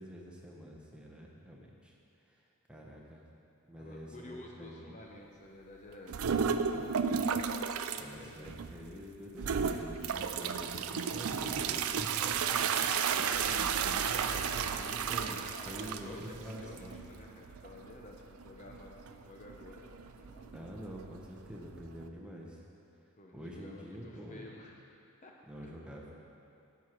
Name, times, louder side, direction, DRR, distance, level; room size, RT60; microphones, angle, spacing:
voice 1, 0.0-1.9 2.7-3.2 3.7-5.0 6.2-7.0 8.0-12.9 13.2-17.0 20.5-22.6 23.3-24.5 25.5-26.1, equal, 5° right, -3 dB, 1.0 m, -46 dB
voice 2, 3.8-6.4 7.9-8.6 15.4-20.6 23.2-24.8 25.2-25.3 25.6-25.7, left 2 dB, 35° left, 0 dB, 0.7 m, -51 dB
sound 1, 6.1-8.0 8.5-8.9 9.4-22.0, right 6 dB, 70° right, 0.4 m, -33 dB
11.0 x 8.1 x 4.5 m, 2.7 s
head